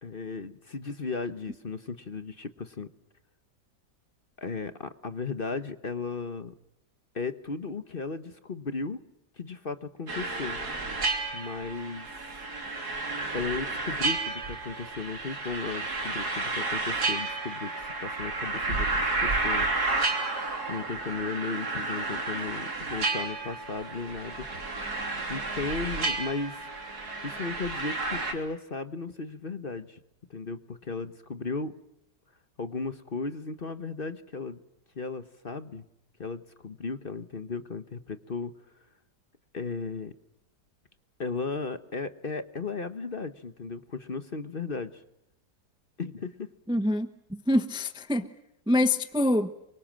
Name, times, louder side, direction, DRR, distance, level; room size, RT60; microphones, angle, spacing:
voice 1, 0.0-2.9 4.4-6.5 7.1-9.0 9.4-10.6 11.3-12.1 13.3-20.1 20.7-24.4 25.3-26.7 27.2-30.0 30.3-31.7 32.6-34.6 34.9-35.8 36.2-38.5 39.5-40.1 41.2-45.0 46.0-46.5, left 4 dB, 40° left, 1.1 m, -35 dB
sound 1, 10.1-28.3, right 3 dB, 70° right, 3.8 m, -31 dB
voice 2, 46.7-48.3 48.7-49.5, left 1 dB, 5° right, 0.7 m, -25 dB
28.5 x 24.0 x 7.6 m
omnidirectional pair, 1.8 m